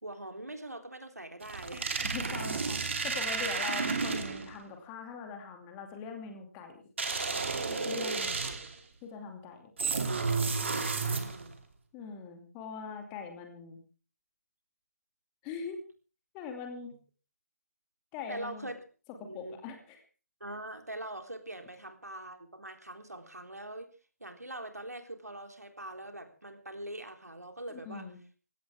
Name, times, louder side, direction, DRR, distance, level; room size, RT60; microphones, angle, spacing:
voice 1, 0.0-2.0 4.0-4.1 7.8-8.6 10.6-11.6 18.3-18.8 19.2-19.6 20.4-23.9 24.2-28.0, right 1 dB, 80° right, 5 dB, 3.6 m, -43 dB
sound 1, 1.4-4.6 7.0-8.8 9.8-11.5, right 4 dB, 50° right, 2.9 m, -32 dB
voice 2, 2.0-6.8 7.7-8.3 9.0-9.7 11.9-13.8 15.4-15.8 16.3-16.9 18.1-18.7 19.2-20.0 27.7-28.2, left 5 dB, 15° left, 4 dB, 2.5 m, -42 dB
20.0 x 16.5 x 3.6 m, 0.36 s
figure-of-eight pair, 150°, 8 cm